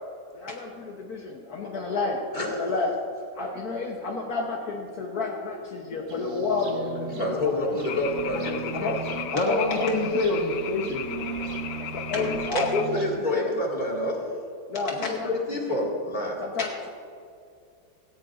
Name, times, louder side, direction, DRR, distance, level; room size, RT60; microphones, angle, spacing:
voice 1, 0.3-2.9 3.3-7.8 8.7-9.0 9.3-10.1 11.8-13.0 13.4-13.6 14.7-15.3 15.7-15.9 16.4-16.9, left 3 dB, 65° left, 0 dB, 1.5 m, -30 dB
sound 1, 6.1-13.2, right 5 dB, 50° right, 1.0 m, -38 dB
voice 2, 7.1-9.2 12.5-14.2 14.9-16.4, left 1 dB, 30° left, -2 dB, 2.2 m, -28 dB
sound 2, 7.8-12.9, left 10 dB, 90° left, 1.2 m, -36 dB
voice 3, 9.3-11.3, left 2 dB, 50° left, 0 dB, 1.5 m, -26 dB
17.5 x 15.5 x 2.5 m, 2.4 s
omnidirectional pair, 1.8 m